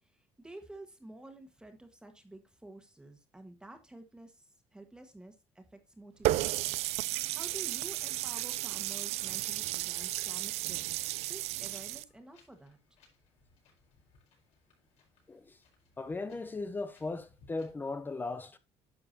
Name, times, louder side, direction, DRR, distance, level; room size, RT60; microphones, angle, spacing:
voice 1, 0.0-12.8, right 2 dB, 5° right, 1.5 m, -51 dB
Water tap faucet, 6.2-12.0, right 16 dB, 75° right, 0.4 m, -33 dB
Wind, 11.3-17.7, left 4 dB, 75° left, 4.9 m, -66 dB
voice 2, 15.3-15.6 16.0-18.6, left 3 dB, 20° left, 0.7 m, -37 dB
10.5 x 6.9 x 2.8 m
cardioid pair, 140°, 11 cm